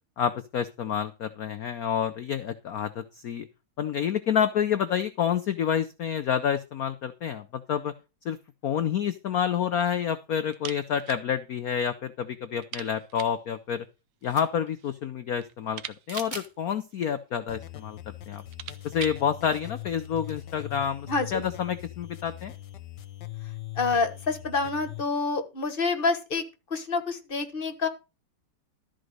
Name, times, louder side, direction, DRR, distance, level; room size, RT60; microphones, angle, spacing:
voice 1, 0.2-3.5 3.8-7.9 8.2-8.4 8.6-13.8 14.2-15.8 16.1-18.0 18.3-18.4 18.8-22.5, left 8 dB, 75° left, 11 dB, 0.8 m, -28 dB
sound 1, 10.5-11.3 11.5-11.6 12.0-12.1 12.6-13.5 14.4-15.0 15.3-17.3 18.0-18.1 18.3-19.3, right 11 dB, 70° right, 1.3 m, -43 dB
sound 2, 14.2-14.7 16.1-16.5 17.0-17.1 18.3-18.4 18.7-18.8 20.1-20.4, right 3 dB, 25° right, 1.3 m, -42 dB
sound 3, 17.5-25.0, left 14 dB, 60° left, 1.5 m, -41 dB
voice 2, 21.1-21.4 23.7-26.4 26.7-27.9, left 4 dB, 30° left, 7 dB, 1.3 m, -27 dB
13.0 x 5.0 x 6.5 m, 0.29 s
omnidirectional pair, 2.4 m